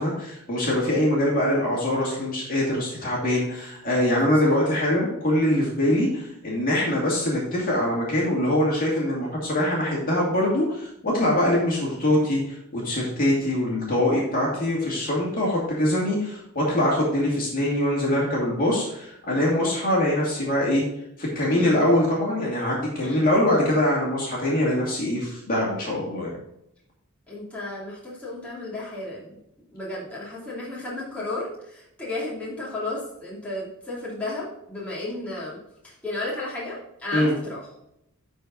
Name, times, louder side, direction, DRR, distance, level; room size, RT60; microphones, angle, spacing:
voice 1, 0.0-20.8 21.2-26.4 37.1-37.3, left 1 dB, 40° left, -4 dB, 2.5 m, -23 dB
voice 2, 27.3-29.4 29.7-35.6 35.8-37.7, left 2 dB, 5° left, -8 dB, 2.8 m, -33 dB
11.5 x 4.6 x 3.9 m, 0.80 s
head